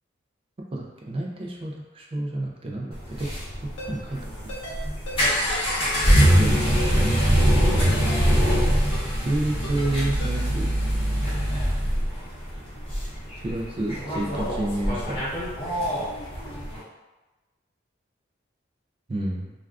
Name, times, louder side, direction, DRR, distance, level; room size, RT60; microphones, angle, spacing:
voice 1, 0.7-3.3 3.6-4.3 4.6-5.0 6.4-7.0 9.2-10.7 13.4-15.2 19.1-19.5, right 1 dB, 30° right, -1 dB, 0.3 m, -30 dB
sound 1, 2.9-16.8, equal, 30° left, 0.9 m, -23 dB
Ringtone, 3.8-3.9 4.5-4.8 5.1-5.2 5.5-5.6 6.2-6.5 6.8-6.9 7.2-7.3 7.9-8.2 8.5-8.6 8.9-9.0 9.6-9.9 10.2-10.3, equal, 65° left, 0.8 m, -37 dB
2.3 x 2.2 x 3.4 m, 1.2 s
head